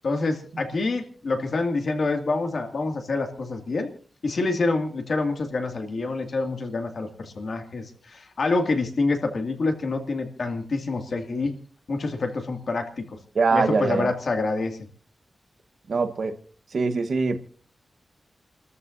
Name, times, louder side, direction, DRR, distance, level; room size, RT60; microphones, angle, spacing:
voice 1, 0.0-3.9 4.2-11.6 11.9-13.2 13.5-14.8, left 3 dB, 55° left, 2.2 m, -27 dB
voice 2, 13.3-14.1 15.9-16.4 16.7-17.4, right 4 dB, 60° right, 1.1 m, -23 dB
30.0 x 13.5 x 2.6 m
wide cardioid pair, 140°, 0 cm